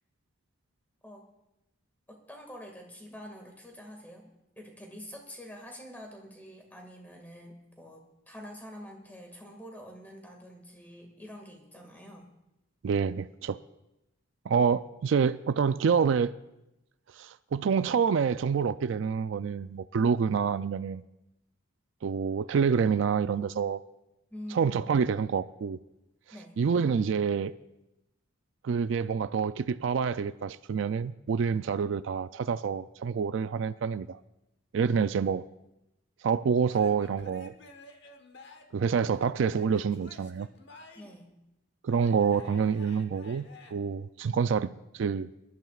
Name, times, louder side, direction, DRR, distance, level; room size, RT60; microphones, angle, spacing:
voice 1, 2.1-12.3 24.3-24.9 26.3-26.6 34.9-35.2 39.1-39.2 41.0-41.3, equal, 10° left, 2 dB, 1.9 m, -47 dB
voice 2, 12.8-13.6 14.5-16.3 17.2-21.0 22.0-23.8 24.5-25.8 26.6-27.5 28.6-34.2 34.7-35.4 36.2-37.5 38.7-40.5 41.8-45.3, right 6 dB, 65° right, 13 dB, 0.3 m, -27 dB
Male speech man speaking / Yell / Laughter, 36.7-38.8 39.5-41.2 41.9-43.7, left 2 dB, 55° left, 1.2 m, -51 dB
25.0 x 12.0 x 2.4 m, 0.90 s
head